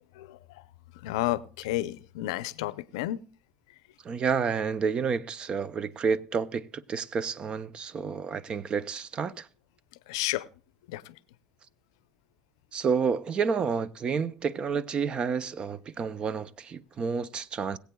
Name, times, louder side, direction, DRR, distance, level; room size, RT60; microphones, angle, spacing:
voice 1, 0.1-0.6 1.0-3.2 10.1-10.5 10.9-11.1, left 16 dB, 85° left, 0.5 m, -31 dB
voice 2, 4.0-9.5 12.7-17.8, right 6 dB, 40° right, 0.6 m, -30 dB
21.5 x 8.3 x 2.3 m
supercardioid pair, 90°, 3 cm